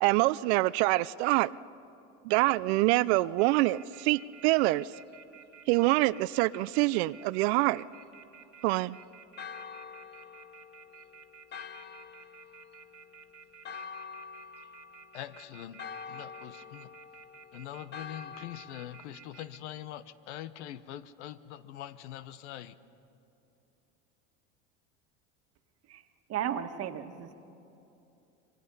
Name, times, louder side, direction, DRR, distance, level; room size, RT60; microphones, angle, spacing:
voice 1, 0.0-1.5 2.2-4.9 5.7-7.8 8.6-9.0, right 19 dB, 70° right, 18 dB, 0.5 m, -25 dB
sound 1, 3.4-19.6, right 8 dB, 5° right, 2.2 m, -53 dB
Church bell, 9.4-19.0, left 6 dB, 30° left, 0.9 m, -47 dB
voice 2, 15.1-15.8 16.1-16.9 17.5-22.8, left 12 dB, 80° left, 14 dB, 1.1 m, -43 dB
voice 3, 26.3-27.3, right 9 dB, 45° right, 7 dB, 1.6 m, -34 dB
26.0 x 22.5 x 5.5 m, 2.8 s
supercardioid pair, 105°, 34 cm